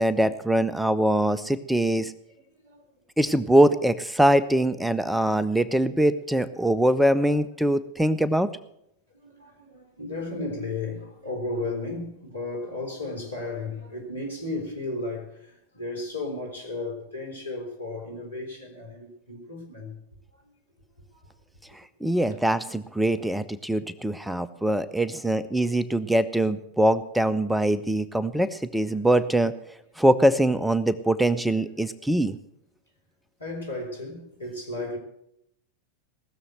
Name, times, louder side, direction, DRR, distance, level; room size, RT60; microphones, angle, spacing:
voice 1, 0.0-2.1 3.2-8.5 22.0-29.5 30.0-32.4, right 1 dB, 5° right, 0.6 m, -23 dB
voice 2, 9.1-20.0 20.4-20.5 21.2-21.3 29.2-29.3 33.4-35.0, left 2 dB, 85° left, 3.7 m, -34 dB
18.5 x 7.0 x 7.7 m
figure-of-eight pair, 90°, 0 cm